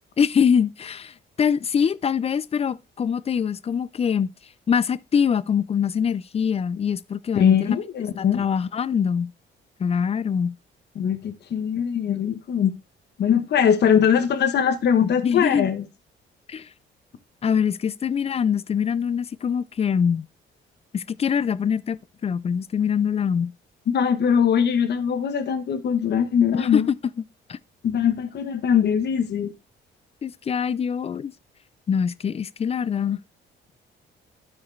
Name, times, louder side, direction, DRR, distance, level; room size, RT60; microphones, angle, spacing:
voice 1, 0.2-4.3 4.7-7.8 8.2-9.3 9.8-10.5 15.0-15.7 16.5-16.7 17.4-20.3 20.9-23.5 26.5-26.8 27.5-27.6 30.2-31.3 31.9-33.2, left 7 dB, 30° left, 0.4 m, -24 dB
voice 2, 7.3-8.4 11.0-12.7 13.2-15.8 23.9-26.9 27.8-29.5, left 8 dB, 60° left, 1.0 m, -21 dB
12.0 x 4.8 x 3.2 m
cardioid pair, 90°, 20 cm